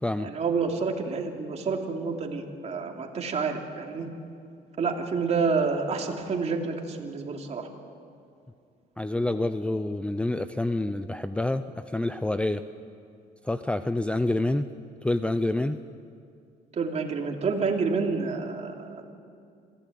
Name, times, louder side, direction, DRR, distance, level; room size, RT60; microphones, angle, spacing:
voice 1, 0.2-4.1 4.8-7.7 16.7-19.1, right 4 dB, 40° right, 2 dB, 2.9 m, -28 dB
voice 2, 9.0-12.6 13.4-14.7 15.0-15.8, left 2 dB, 5° left, 11 dB, 0.6 m, -27 dB
26.0 x 15.5 x 9.3 m, 2.4 s
cardioid pair, 110°, 17 cm